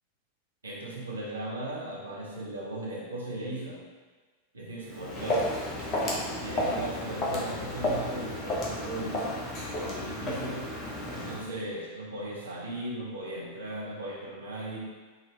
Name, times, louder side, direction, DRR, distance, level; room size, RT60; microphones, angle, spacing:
voice 1, 0.6-3.8 4.5-5.6 6.4-10.7 11.1-14.8, right 1 dB, 75° right, -4 dB, 0.8 m, -37 dB
Walk footsteps, 4.9-11.5, left 1 dB, 30° left, 0.8 m, -32 dB
4.0 x 2.7 x 3.2 m, 1.3 s
figure-of-eight pair, 90°, 0 cm